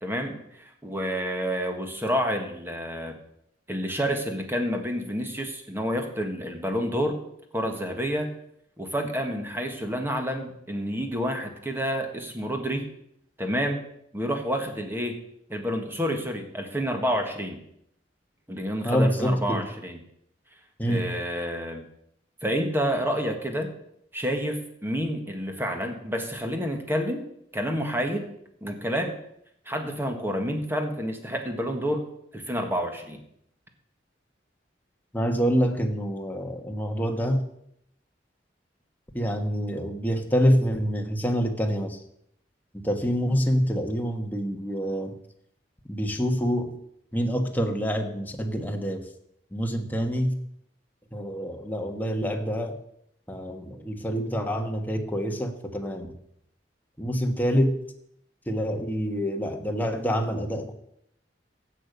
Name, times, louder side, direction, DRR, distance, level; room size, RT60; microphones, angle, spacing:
voice 1, 0.0-3.2 3.7-7.2 7.5-8.3 8.8-12.9 13.4-13.8 14.1-15.2 15.5-17.6 18.5-20.0 20.9-21.8 22.4-23.7 24.1-27.3 27.5-28.3 28.6-29.2 29.7-32.0 32.3-33.2, equal, 15° right, 4 dB, 1.5 m, -29 dB
voice 2, 18.8-19.6 20.8-21.1 35.1-37.5 39.1-42.0 42.7-45.2 45.9-46.7 47.1-49.1 49.5-50.3 51.1-52.8 53.3-56.1 57.0-57.8 58.5-60.7, equal, 10° left, 3 dB, 1.3 m, -26 dB
16.0 x 6.7 x 5.4 m, 0.74 s
head